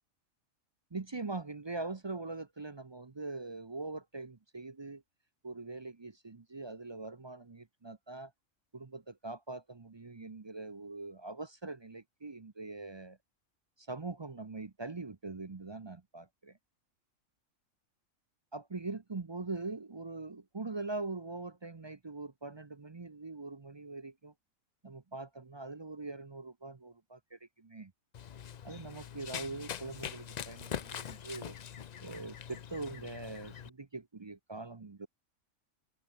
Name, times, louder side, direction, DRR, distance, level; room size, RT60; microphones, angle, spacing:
voice 1, 0.9-5.0 5.4-8.3 8.7-13.2 13.8-16.6 18.5-24.3 24.8-27.9 28.6-31.5 32.0-35.1, right 3 dB, 30° right, 0.5 m, -42 dB
Run, 28.1-33.7, left 8 dB, 60° left, 0.4 m, -43 dB
omnidirectional pair, 1.4 m